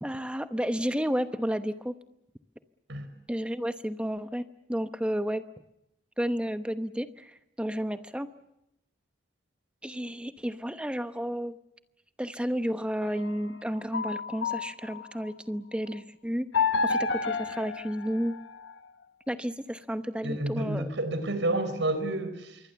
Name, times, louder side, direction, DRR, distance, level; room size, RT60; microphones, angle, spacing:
voice 1, 0.0-1.9 3.3-5.4 6.2-8.3 9.8-11.6 12.2-16.5 16.8-18.4 19.3-20.9, equal, 5° right, 0.9 m, -32 dB
sound 1, 13.0-15.3 16.5-18.8, left 5 dB, 90° left, 1.2 m, -30 dB
voice 2, 20.2-22.6, right 1 dB, 85° right, 4.6 m, -30 dB
26.0 x 23.5 x 7.0 m
head